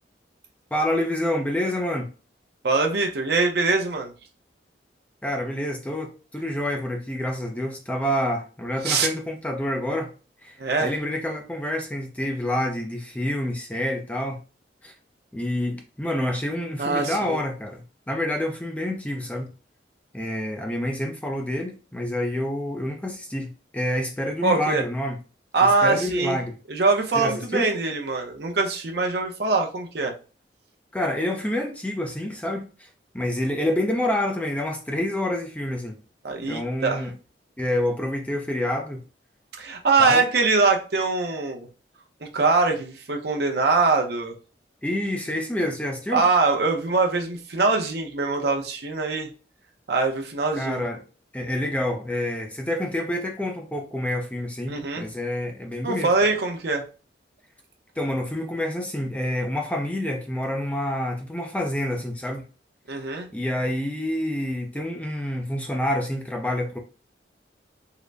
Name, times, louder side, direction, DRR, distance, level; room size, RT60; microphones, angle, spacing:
voice 1, 0.7-2.1 5.2-10.1 10.4-14.4 14.8-14.9 15.3-19.5 20.1-25.2 25.6-26.5 27.1-27.7 30.9-32.9 33.1-36.0 36.5-37.1 37.6-39.0 40.0-40.3 44.8-46.2 50.5-51.0 51.3-56.3 58.0-62.4 63.3-66.8, left 1 dB, 10° left, 0.4 m, -28 dB
voice 2, 2.6-4.1 8.8-9.1 10.6-10.9 16.8-17.4 24.4-24.8 25.5-26.4 26.7-30.1 36.2-37.0 39.6-41.7 42.2-44.3 46.1-49.3 49.9-50.8 54.7-55.0 55.8-56.8 62.9-63.3, right 3 dB, 60° right, 0.7 m, -23 dB
3.7 x 2.1 x 3.3 m
head